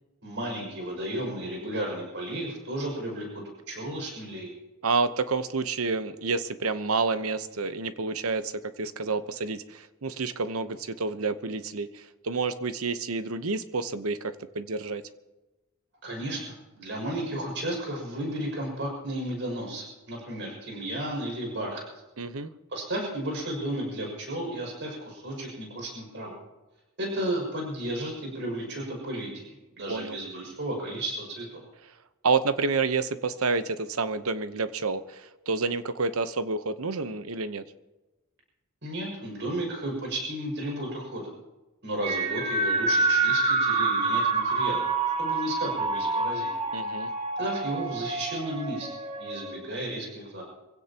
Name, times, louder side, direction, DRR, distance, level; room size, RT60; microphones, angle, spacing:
voice 1, 0.2-4.5 16.0-21.8 22.7-26.3 27.0-31.6 38.8-41.3 41.8-44.9 45.2-46.5 47.4-50.4, right 1 dB, 60° right, -1 dB, 6.2 m, -33 dB
voice 2, 4.8-15.0 22.2-22.5 29.9-30.2 32.2-37.6 46.7-47.1, right 4 dB, 90° right, 11 dB, 1.0 m, -29 dB
sound 1, 42.0-49.6, right 3 dB, 30° right, 1.9 m, -27 dB
25.0 x 16.5 x 2.9 m, 1.1 s
head